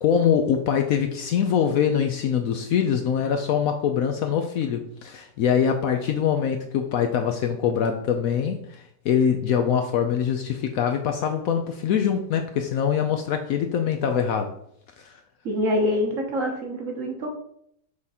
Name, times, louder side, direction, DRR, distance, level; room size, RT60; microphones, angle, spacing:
voice 1, 0.0-14.5 15.0-15.1, left 8 dB, 70° left, 5 dB, 0.9 m, -23 dB
voice 2, 15.4-17.4, left 1 dB, 55° right, 1 dB, 1.4 m, -25 dB
6.5 x 3.5 x 4.2 m, 0.71 s
omnidirectional pair, 1.8 m